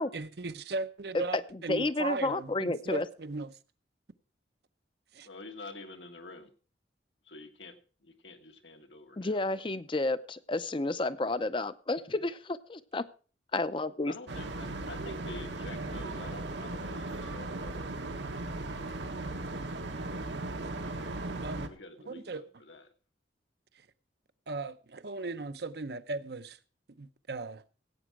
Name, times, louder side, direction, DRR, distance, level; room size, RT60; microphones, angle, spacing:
voice 1, 0.1-3.6 5.1-5.3 21.4-21.7 22.1-22.4 23.7-23.9 24.5-26.6 27.0-27.6, right 3 dB, 60° right, 0.7 m, -37 dB
voice 2, 1.7-3.1 9.2-13.1 13.5-14.1, left 2 dB, 30° left, 0.5 m, -31 dB
voice 3, 5.2-6.5 7.2-9.4 14.1-18.7 21.7-22.8, left 2 dB, 80° left, 1.7 m, -48 dB
sound 1, 14.3-21.7, right 2 dB, 80° right, 1.4 m, -37 dB
16.5 x 8.6 x 4.8 m
head